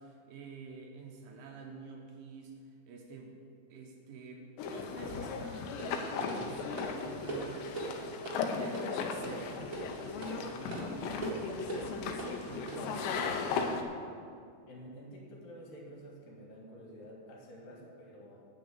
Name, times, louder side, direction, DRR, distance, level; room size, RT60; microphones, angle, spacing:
voice 1, 0.0-3.3 3.7-7.9 8.6-13.8, right 4 dB, 80° right, 1 dB, 2.1 m, -49 dB
sound 1, 4.6-13.8, left 5 dB, 75° left, 2.8 m, -37 dB
sound 2, 5.8-13.5, right 2 dB, 50° right, 1.0 m, -42 dB
voice 2, 14.7-18.5, equal, 55° left, -2 dB, 3.2 m, -50 dB
9.3 x 7.4 x 7.9 m, 2.4 s
omnidirectional pair, 5.5 m